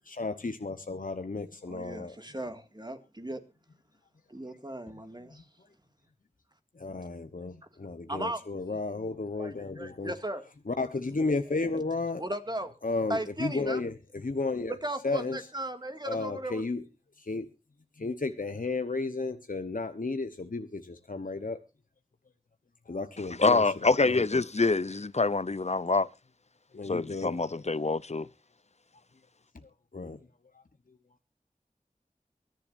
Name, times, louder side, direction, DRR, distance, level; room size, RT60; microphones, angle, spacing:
voice 1, 0.1-2.1 6.8-7.5 7.8-10.1 10.7-12.2 12.8-13.9 14.2-14.7 15.0-15.4 16.1-16.8 17.2-17.5 18.0-21.6 22.9-23.6 24.1-24.4 26.7-27.4 29.9-30.2, left 3 dB, 75° left, 1.1 m, -33 dB
voice 2, 1.7-3.4 4.3-5.4 8.1-8.4 9.4-10.4 11.6-11.7 12.2-12.7 13.1-13.8 14.7-16.6, right 1 dB, 30° right, 2.2 m, -36 dB
voice 3, 23.4-26.1 26.9-28.3, left 3 dB, 55° left, 0.7 m, -26 dB
24.0 x 10.5 x 2.6 m
wide cardioid pair, 40°, 14 cm